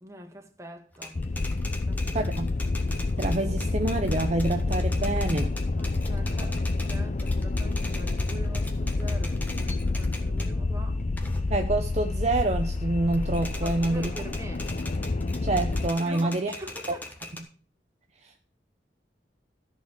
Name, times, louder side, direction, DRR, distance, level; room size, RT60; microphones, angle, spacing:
voice 1, 0.0-1.3 1.9-2.3 5.8-11.1 13.6-14.7 16.0-17.1, right 1 dB, 15° right, 1.5 m, -44 dB
Typewriter, 0.9-10.6 11.0-12.8 13.1-17.4, left 2 dB, 10° left, 1.4 m, -42 dB
sound 1, 1.2-15.9, left 2 dB, 40° left, 0.6 m, -28 dB
voice 2, 2.1-2.5 3.2-5.5 6.4-6.5 11.5-14.1 15.4-16.5 18.2-18.3, right 2 dB, 40° right, 0.8 m, -27 dB
14.0 x 4.6 x 7.5 m
head